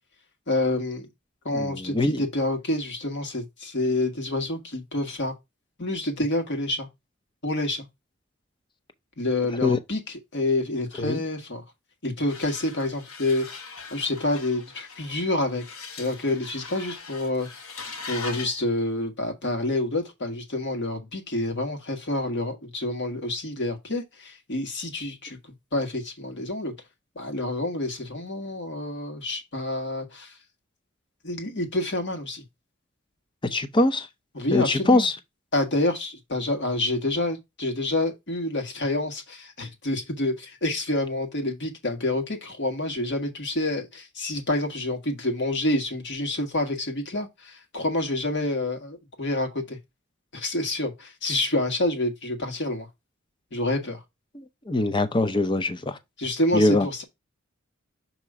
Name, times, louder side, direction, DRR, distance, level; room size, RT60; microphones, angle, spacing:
voice 1, 0.5-1.1 1.4-5.3 5.8-6.9 7.4-7.9 9.2-11.6 12.0-13.5 13.9-15.6 16.0-17.5 18.1-25.4 25.7-26.7 27.1-30.3 31.2-32.4 34.3-35.1 35.5-49.8 50.3-52.9 53.5-54.0 56.2-57.0, left 2 dB, 55° left, 1.6 m, -28 dB
voice 2, 1.5-2.2 9.6-9.8 11.0-11.2 33.4-34.1 34.5-35.2 54.3-56.0 56.5-56.9, left 2 dB, 25° left, 0.6 m, -23 dB
sound 1, 12.3-18.6, left 5 dB, 85° left, 1.2 m, -41 dB
6.7 x 2.9 x 4.7 m
head